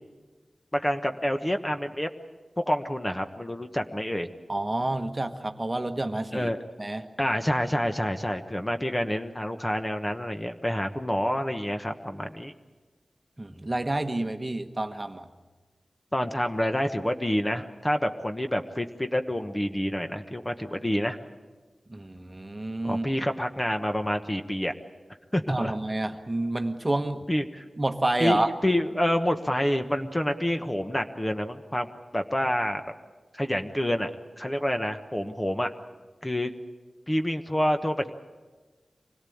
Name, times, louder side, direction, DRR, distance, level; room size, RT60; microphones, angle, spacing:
voice 1, 0.7-2.1 2.6-4.3 6.3-6.6 7.2-12.5 16.1-21.2 22.8-24.7 25.3-25.7 27.3-27.6 28.2-31.9 32.1-32.8 33.3-34.1 34.4-35.7 36.2-36.5 37.1-38.1, equal, 15° left, 6 dB, 1.2 m, -28 dB
voice 2, 4.5-6.5 6.8-7.1 13.4-15.3 21.9-23.1 25.5-27.2 27.8-28.5, right 1 dB, 25° right, 6 dB, 1.3 m, -29 dB
25.0 x 17.5 x 8.7 m, 1.3 s
wide cardioid pair, 70°, 0 cm